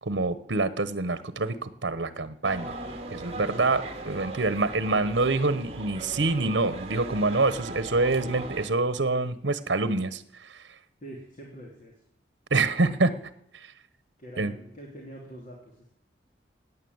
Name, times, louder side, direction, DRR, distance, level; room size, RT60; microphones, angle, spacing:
voice 1, 0.0-2.7 3.1-10.7 12.5-13.1 13.5-13.7 14.4-14.5, right 3 dB, 75° right, 14 dB, 1.0 m, -26 dB
sound 1, 2.4-8.7, right 2 dB, 35° right, 2.3 m, -38 dB
voice 2, 11.0-11.9 12.8-12.9 14.2-15.9, right 1 dB, 45° left, -1 dB, 2.9 m, -44 dB
16.5 x 9.6 x 7.9 m, 0.72 s
head